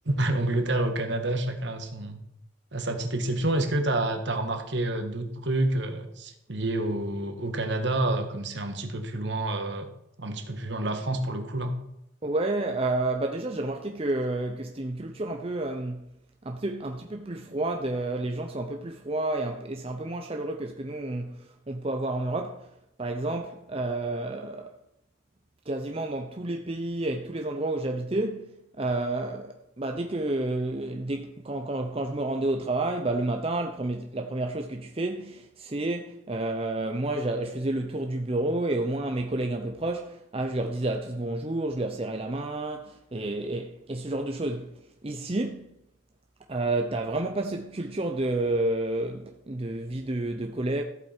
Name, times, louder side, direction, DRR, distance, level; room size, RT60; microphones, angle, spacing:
voice 1, 0.0-2.2 2.7-9.9 10.2-11.7, right 1 dB, 60° right, 1.5 m, -28 dB
voice 2, 12.2-16.1 16.4-22.7 23.0-24.7 25.7-44.7 45.0-45.7 46.5-50.8, right 2 dB, 30° right, 0.7 m, -30 dB
14.0 x 8.2 x 4.5 m
head